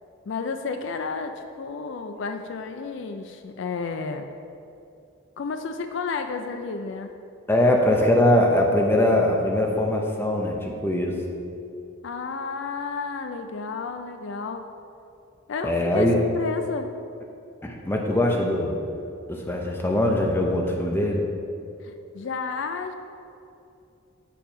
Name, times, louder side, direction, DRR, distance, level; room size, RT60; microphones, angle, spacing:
voice 1, 0.3-4.3 5.4-7.1 12.0-14.7 15.5-16.1 16.3-16.9 21.8-22.9, left 4 dB, 60° left, 7 dB, 0.3 m, -32 dB
voice 2, 7.5-11.2 15.6-16.2 17.6-18.8 19.3-21.2, left 1 dB, 10° left, 0 dB, 0.6 m, -22 dB
7.1 x 4.5 x 5.1 m, 2.7 s
head